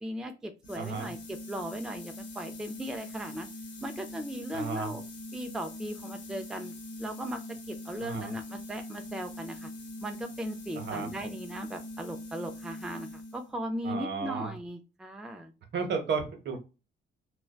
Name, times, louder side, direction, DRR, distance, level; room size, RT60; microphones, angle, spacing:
voice 1, 0.0-3.5 3.8-5.0 5.3-6.7 7.0-7.4 7.7-9.7 10.0-15.5, right 1 dB, 5° right, 6 dB, 0.3 m, -37 dB
sound 1, 0.6-13.6, left 1 dB, 70° left, 0.8 m, -43 dB
voice 2, 0.8-1.1 4.5-4.9 8.0-8.3 10.7-11.1 13.8-14.5 15.7-16.6, right 5 dB, 65° right, 5 dB, 0.8 m, -33 dB
2.5 x 2.2 x 2.2 m, 0.31 s
cardioid pair, 90°, 20 cm